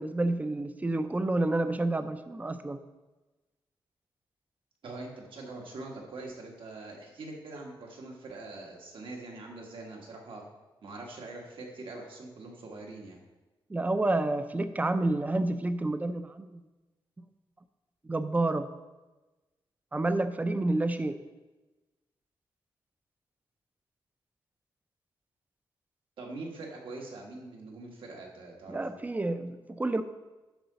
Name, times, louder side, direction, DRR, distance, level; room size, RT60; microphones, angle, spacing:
voice 1, 0.0-2.8 13.7-16.6 18.0-18.7 19.9-21.2 28.7-30.0, right 2 dB, 15° right, 10 dB, 0.5 m, -29 dB
voice 2, 4.8-10.4 10.8-13.2 26.2-29.1, right 2 dB, 70° right, 0 dB, 1.7 m, -43 dB
10.0 x 3.9 x 6.9 m, 1.2 s
wide cardioid pair, 155°, 9 cm